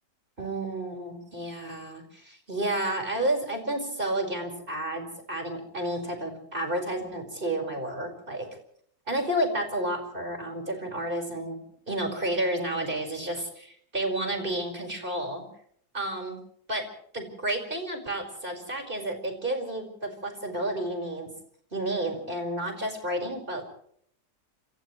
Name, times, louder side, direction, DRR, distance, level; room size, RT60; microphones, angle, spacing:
voice 1, 0.4-8.5 9.1-11.6 11.9-15.4 15.9-16.4 16.7-16.8 17.1-21.3 21.7-23.6, right 1 dB, 30° right, 4 dB, 5.4 m, -31 dB
30.0 x 27.0 x 3.2 m, 0.64 s
omnidirectional pair, 1.8 m